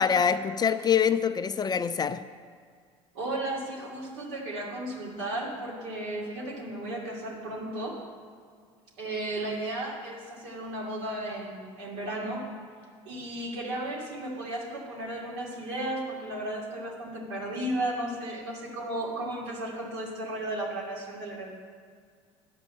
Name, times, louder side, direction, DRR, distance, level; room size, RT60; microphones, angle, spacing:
voice 1, 0.0-2.2, left 7 dB, 25° left, 12 dB, 0.4 m, -25 dB
voice 2, 3.1-8.0 9.0-12.4 13.0-21.5, right 1 dB, 75° right, -2 dB, 2.7 m, -34 dB
10.0 x 5.4 x 7.6 m, 2.1 s
supercardioid pair, 85°, 15 cm